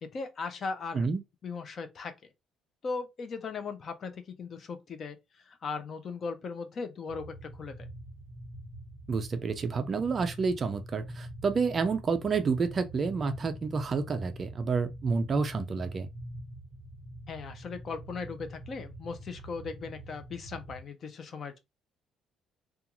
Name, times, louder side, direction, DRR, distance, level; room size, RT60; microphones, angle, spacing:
voice 1, 0.0-1.1 1.4-2.1 2.8-5.2 5.5-7.9 17.3-21.6, left 4 dB, 35° left, 0.4 m, -38 dB
sound 1, 7.1-20.8, right 1 dB, 5° right, 0.8 m, -45 dB
voice 2, 9.1-16.1, right 4 dB, 30° right, 0.3 m, -29 dB
2.4 x 2.3 x 2.9 m
cardioid pair, 165°, 0 cm